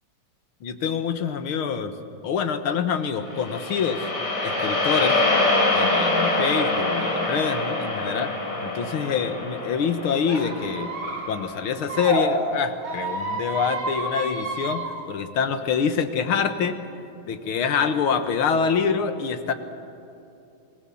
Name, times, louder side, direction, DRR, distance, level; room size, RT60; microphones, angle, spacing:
voice 1, 0.6-1.9 2.2-4.1 4.4-5.2 5.7-8.3 8.6-10.9 11.3-16.8 17.3-19.5, left 6 dB, 85° left, 8 dB, 2.2 m, -25 dB
sound 1, 3.3-11.6, left 2 dB, 60° left, 5.8 m, -25 dB
Squeak, 10.2-12.2 12.8-14.9, right 2 dB, 80° right, 6.6 m, -30 dB
26.5 x 20.5 x 7.1 m, 2.8 s
omnidirectional pair, 2.2 m